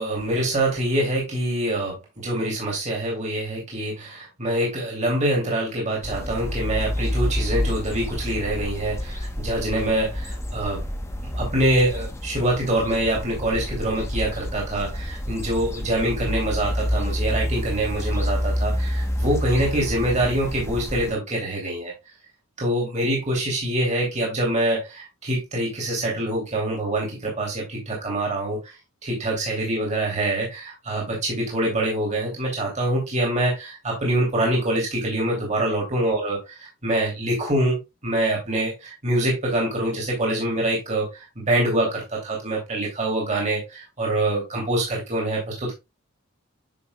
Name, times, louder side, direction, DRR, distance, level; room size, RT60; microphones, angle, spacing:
voice 1, 0.0-10.8 11.3-21.9 22.6-28.7 29.0-36.4 36.8-45.8, right 1 dB, 35° right, 2.7 m, -25 dB
sound 1, 6.0-21.1, equal, 15° left, 1.0 m, -28 dB
8.8 x 6.3 x 2.2 m
head